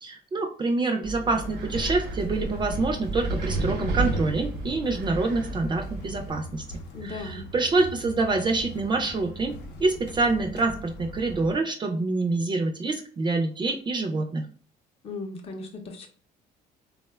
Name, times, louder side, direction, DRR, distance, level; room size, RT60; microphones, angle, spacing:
voice 1, 0.0-6.6 7.0-9.5 9.8-14.5, right 3 dB, 25° right, 3 dB, 0.4 m, -26 dB
Wind, 1.0-6.3, right 2 dB, 80° right, 0.6 m, -31 dB
sound 1, 1.3-11.6, equal, 80° left, 0.6 m, -41 dB
voice 2, 6.9-7.5 15.0-16.1, left 3 dB, 35° left, 3 dB, 0.5 m, -37 dB
3.5 x 2.1 x 2.2 m, 0.43 s
cardioid pair, 110°, 17 cm